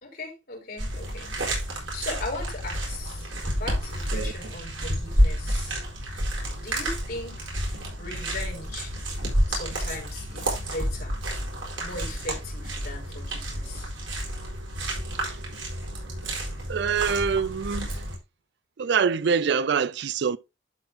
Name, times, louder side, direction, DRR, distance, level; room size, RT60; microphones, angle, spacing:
voice 1, 0.0-3.3 3.5-5.8 6.6-7.6 8.0-8.9 9.5-11.2 11.8-13.9, left 2 dB, 50° left, 4.3 m, -38 dB
sound 1, 0.8-18.2, equal, 80° right, 4.6 m, -30 dB
voice 2, 16.7-17.9 18.8-20.4, right 6 dB, 55° right, 0.4 m, -25 dB
12.0 x 4.4 x 3.6 m
head